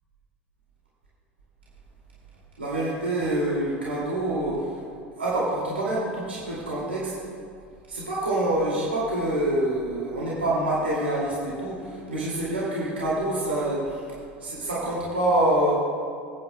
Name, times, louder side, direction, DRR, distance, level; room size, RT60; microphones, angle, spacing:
voice 1, 2.6-4.7 5.2-7.1 7.9-14.1 14.4-15.7, right 1 dB, 80° right, -7 dB, 2.3 m, -26 dB
27.0 x 9.2 x 2.2 m, 2.3 s
figure-of-eight pair, 75°, 6 cm